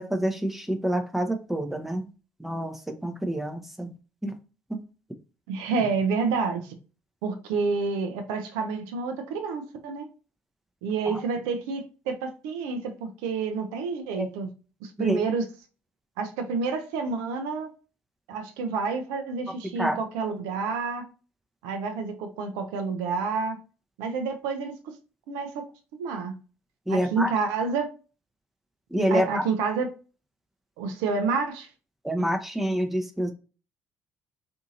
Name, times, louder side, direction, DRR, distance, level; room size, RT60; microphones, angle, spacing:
voice 1, 0.0-2.1 2.4-3.9 4.2-4.3 4.7-4.8 11.1-11.2 14.2-14.3 15.0-15.2 19.8-20.0 26.9-27.3 28.9-29.4 32.0-33.3, equal, 5° right, 0.5 m, -27 dB
voice 2, 5.5-6.7 7.2-10.1 10.8-14.5 14.8-15.4 16.2-17.7 18.3-21.0 21.6-23.6 24.0-24.7 25.3-25.6 26.0-26.3 26.9-27.9 29.1-29.9 30.8-31.7, right 4 dB, 70° right, 0.4 m, -29 dB
2.7 x 2.5 x 2.6 m
hypercardioid pair, 55°, 6 cm